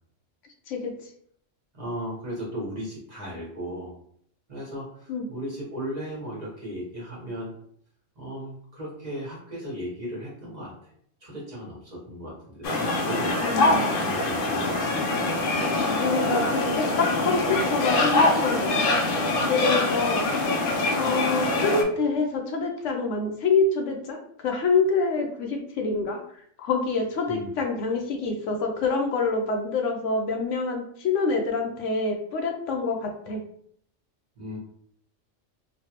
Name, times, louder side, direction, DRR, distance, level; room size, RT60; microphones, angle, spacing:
voice 1, 1.7-3.9 4.5-7.5 8.2-10.7 11.2-12.7 13.1-15.0 27.3-27.5 34.4-34.6, equal, 35° right, -5 dB, 1.0 m, -36 dB
sound 1, 12.6-21.8, left 2 dB, 60° left, 0.6 m, -24 dB
voice 2, 13.4-14.1 15.9-18.7 19.0-19.1 19.5-20.2 21.0-26.2 26.6-33.4, left 4 dB, 75° left, 3 dB, 0.9 m, -26 dB
3.2 x 2.2 x 2.8 m, 0.65 s
omnidirectional pair, 1.3 m